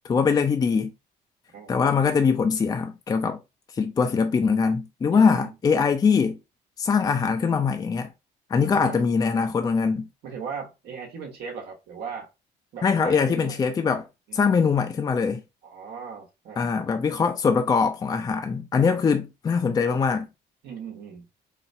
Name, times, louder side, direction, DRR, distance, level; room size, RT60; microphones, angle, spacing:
voice 1, 0.1-0.9 1.7-3.4 3.7-6.4 6.8-8.1 8.5-10.1 12.8-14.1 14.3-15.4 16.6-20.3, left 5 dB, 25° left, 0.4 m, -22 dB
voice 2, 5.1-5.5 8.6-9.0 10.2-12.3 12.7-13.6 14.3-14.6 15.6-16.7 18.9-19.0 20.6-21.2, right 6 dB, 75° right, 1.1 m, -38 dB
4.0 x 2.2 x 2.6 m
cardioid pair, 110°, 17 cm